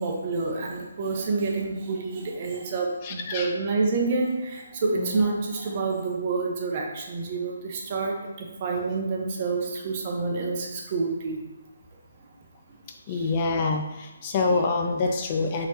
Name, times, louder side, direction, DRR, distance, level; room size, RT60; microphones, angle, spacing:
voice 1, 0.0-11.4 13.1-13.3 13.6-13.8 14.5-14.6 15.5-15.7, right 3 dB, 30° right, 0 dB, 0.8 m, -28 dB
voice 2, 3.0-3.5 5.0-5.2 13.1-15.7, left 3 dB, 30° left, 3 dB, 0.4 m, -26 dB
6.0 x 3.0 x 2.8 m, 1.1 s
figure-of-eight pair, 140°, 0 cm